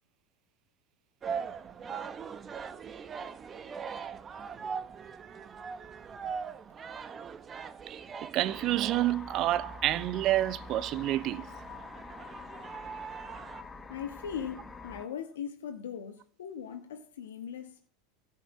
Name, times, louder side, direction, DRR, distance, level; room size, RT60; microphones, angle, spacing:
sound 1, 1.2-13.6, right 6 dB, 25° right, 1.0 m, -41 dB
voice 1, 8.3-11.6, right 14 dB, 45° right, 0.7 m, -28 dB
sound 2, 8.4-15.1, left 3 dB, 15° left, 1.1 m, -46 dB
voice 2, 13.9-17.9, left 8 dB, 90° left, 1.4 m, -39 dB
12.0 x 5.8 x 8.3 m
supercardioid pair, 110°, 0 cm